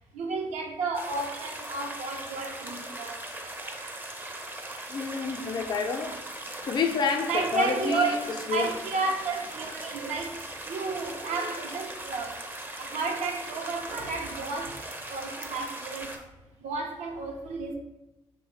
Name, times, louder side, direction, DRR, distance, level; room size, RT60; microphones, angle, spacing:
voice 1, 0.1-3.2 7.3-8.2 8.5-10.3 10.7-12.3 12.8-14.7 15.1-16.1 16.6-17.7, right 3 dB, 70° right, 2 dB, 0.6 m, -32 dB
sound 1, 0.9-16.2, right 1 dB, 15° right, 0.5 m, -39 dB
voice 2, 4.9-6.2 6.7-8.1 8.5-8.7, left 5 dB, 35° left, 4 dB, 0.4 m, -28 dB
3.2 x 2.1 x 3.1 m, 0.98 s
supercardioid pair, 55°, 12 cm